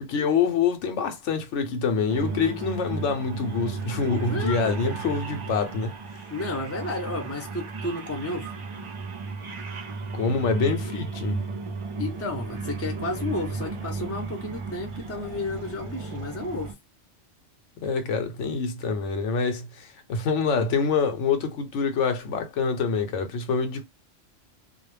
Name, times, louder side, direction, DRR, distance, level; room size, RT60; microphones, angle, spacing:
voice 1, 0.0-5.9 10.1-11.4 17.8-23.8, left 5 dB, 80° left, 1.0 m, -26 dB
sound 1, 2.1-16.7, right 4 dB, 50° right, 0.4 m, -34 dB
voice 2, 4.3-4.9 6.3-8.5 12.0-16.7, left 2 dB, 15° left, 0.5 m, -32 dB
2.4 x 2.1 x 3.1 m
omnidirectional pair, 1.2 m